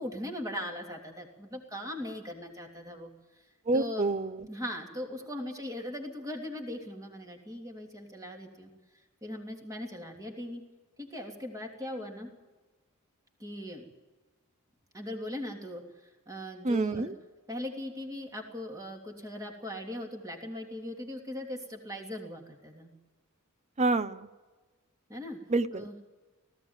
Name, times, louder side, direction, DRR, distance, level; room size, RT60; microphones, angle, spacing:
voice 1, 0.0-3.1 3.7-4.1 4.5-8.7 9.2-10.6 11.0-12.3 13.4-13.8 14.9-17.1 17.5-22.9 25.1-25.4 25.7-25.9, left 1 dB, 15° right, 2 dB, 3.1 m, -39 dB
voice 2, 3.7-4.5 16.6-17.1 23.8-24.3 25.5-26.0, right 3 dB, 30° right, 14 dB, 0.6 m, -28 dB
18.5 x 15.5 x 9.0 m, 1.2 s
head